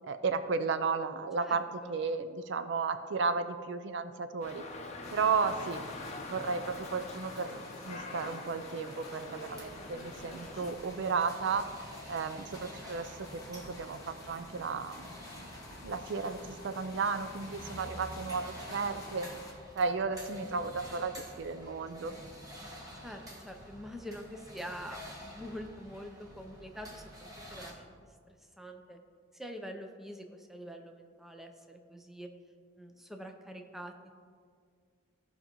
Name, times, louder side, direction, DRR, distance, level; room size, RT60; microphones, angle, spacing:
voice 1, 0.0-4.6 5.1-11.7 12.1-15.0 15.8-19.3 19.8-22.1, right 4 dB, 60° right, 10 dB, 0.4 m, -34 dB
voice 2, 1.4-1.9 23.0-27.9 28.3-29.0 29.3-32.3 32.8-34.1, equal, ahead, 4 dB, 0.5 m, -45 dB
Dog, 4.4-10.7, left 2 dB, 35° left, 0.7 m, -44 dB
sound 1, 5.0-19.5, left 1 dB, 20° left, 1.4 m, -50 dB
sound 2, 9.4-27.7, equal, 20° right, 1.2 m, -49 dB
15.0 x 5.3 x 3.0 m, 2.1 s
head